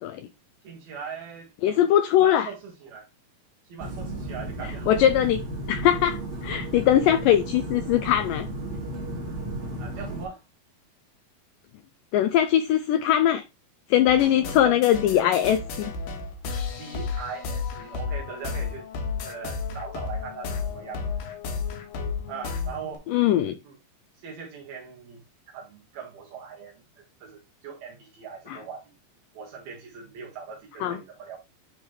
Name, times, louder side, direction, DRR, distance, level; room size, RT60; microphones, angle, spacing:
voice 1, 0.6-1.5 2.2-3.1 3.7-4.9 9.8-10.4 14.2-14.8 15.1-15.4 16.8-18.9 19.2-21.2 22.3-23.1 23.6-23.8 24.2-25.2 25.5-28.9 29.3-31.4, right 6 dB, 75° right, 3.5 m, -40 dB
voice 2, 1.6-2.5 4.9-5.4 5.7-8.5 12.1-13.4 13.9-15.9 23.1-23.6 28.5-28.6 30.8-31.0, left 11 dB, 85° left, 1.9 m, -21 dB
sound 1, 3.8-10.3, right 1 dB, 50° right, 3.7 m, -34 dB
sound 2, 14.1-23.0, left 5 dB, 70° left, 3.0 m, -33 dB
11.0 x 4.0 x 3.1 m
omnidirectional pair, 4.4 m